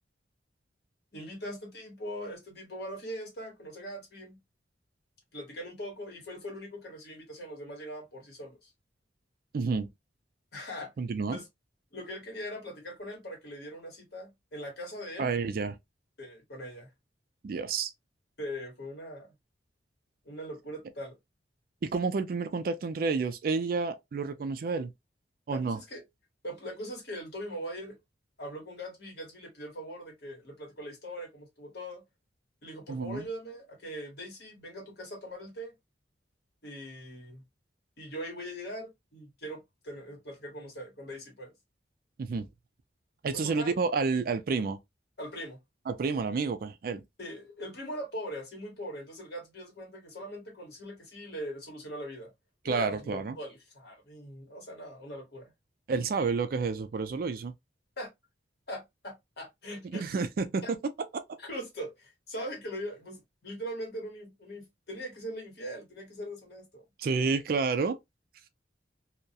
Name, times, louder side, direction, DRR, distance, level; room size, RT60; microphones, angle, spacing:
voice 1, 1.1-4.4 5.3-8.7 10.5-10.9 11.3-11.5 11.9-15.3 16.2-16.9 18.4-19.3 20.2-21.1 25.5-26.0 26.4-28.0 28.4-32.0 32.6-35.7 36.6-37.4 38.0-41.5 43.3-43.7 45.2-45.6 47.2-52.3 52.6-55.5 58.0-58.1 58.7-60.0 60.6-60.7 61.4-66.8, equal, 60° left, 1.1 m, -41 dB
voice 2, 9.5-9.9 11.0-11.4 15.2-15.8 17.4-17.9 21.8-24.9 25.5-25.8 32.9-33.3 42.2-42.5 43.2-44.8 45.9-47.0 52.6-53.4 55.9-57.5 59.8-61.2 67.0-68.0, right 4 dB, 50° right, 0.3 m, -30 dB
2.3 x 2.1 x 2.6 m
head